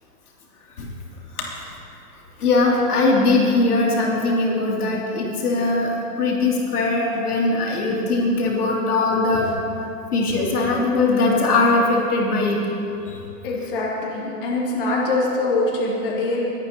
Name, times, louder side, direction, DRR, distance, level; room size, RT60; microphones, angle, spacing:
voice 1, 2.4-9.5 10.1-12.6, left 3 dB, 65° left, -2 dB, 3.2 m, -20 dB
voice 2, 13.4-16.5, left 2 dB, 35° left, -3 dB, 2.0 m, -23 dB
21.0 x 8.7 x 4.2 m, 2.8 s
hypercardioid pair, 175°, 48 cm